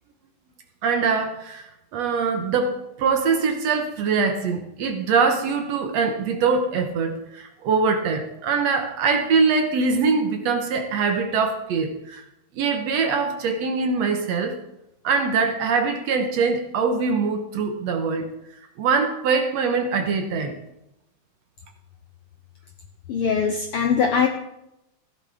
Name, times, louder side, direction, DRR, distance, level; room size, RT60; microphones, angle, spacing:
voice 1, 0.8-12.2 12.5-14.6 15.0-18.3 18.8-20.6, right 5 dB, 65° right, 5 dB, 2.0 m, -23 dB
voice 2, 23.1-24.3, left 6 dB, 90° left, 5 dB, 1.2 m, -21 dB
15.0 x 11.5 x 3.4 m, 0.87 s
omnidirectional pair, 3.5 m